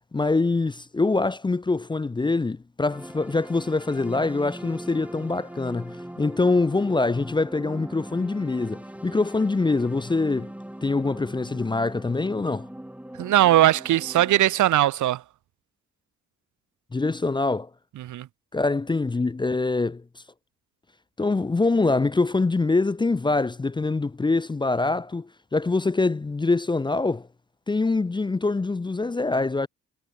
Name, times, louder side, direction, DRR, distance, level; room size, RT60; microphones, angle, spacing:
voice 1, 0.1-10.5 10.8-12.7 16.9-17.7 18.5-20.0 21.2-27.3 27.7-29.7, left 3 dB, 15° left, 0.6 m, -24 dB
sound 1, 2.9-14.4, right 1 dB, 5° right, 6.4 m, -40 dB
voice 2, 13.2-15.2 18.0-18.3, right 14 dB, 75° right, 1.6 m, -20 dB
cardioid pair, 90°, 30 cm